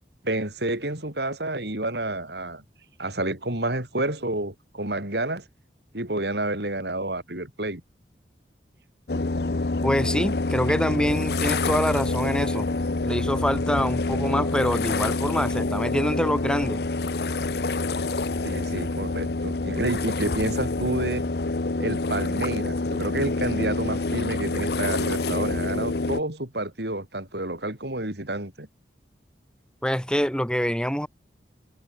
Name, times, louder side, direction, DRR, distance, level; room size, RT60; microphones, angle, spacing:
voice 1, 0.2-2.6 3.0-5.4 5.9-7.8 18.4-21.2 21.8-28.7, right 1 dB, 75° right, 5.5 m, -29 dB
sound 1, 9.1-26.2, left 3 dB, 65° left, 0.9 m, -27 dB
voice 2, 9.8-12.7 13.0-16.8 29.8-31.1, equal, 5° left, 7.4 m, -25 dB
head